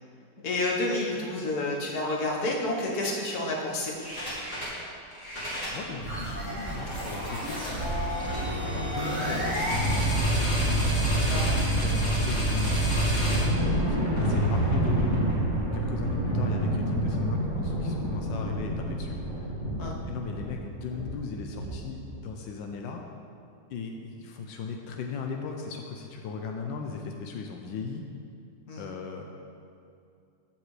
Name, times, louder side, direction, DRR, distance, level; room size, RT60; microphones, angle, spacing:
voice 1, 0.4-4.0 11.3-11.6 19.8-20.0 28.7-28.9, left 2 dB, 60° left, -1 dB, 1.7 m, -29 dB
sound 1, 4.0-4.8 5.1-22.1, right 1 dB, 40° left, 2.6 m, -28 dB
voice 2, 5.7-7.9 8.6-10.7 11.0-15.4 15.7-19.5 20.1-23.0 23.7-28.0 28.8-29.2, left 5 dB, 90° left, 2 dB, 1.4 m, -38 dB
14.0 x 7.3 x 3.2 m, 2.5 s
omnidirectional pair, 2.0 m